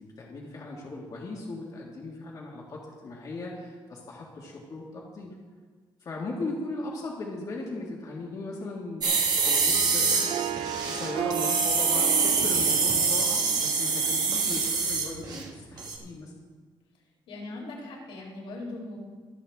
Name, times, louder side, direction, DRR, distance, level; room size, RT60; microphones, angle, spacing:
voice 1, 0.0-5.3 6.0-9.1 9.4-10.4 10.9-16.3, left 2 dB, 40° left, -3 dB, 2.0 m, -38 dB
sound 1, 9.0-15.5 15.8-15.9, right 4 dB, 45° right, 1.9 m, -25 dB
Harp, 9.5-14.7, right 9 dB, 75° right, 0.7 m, -35 dB
voice 2, 17.3-19.0, left 2 dB, 85° left, -3 dB, 4.3 m, -39 dB
24.5 x 8.4 x 3.6 m, 1.5 s
cardioid pair, 150°, 9 cm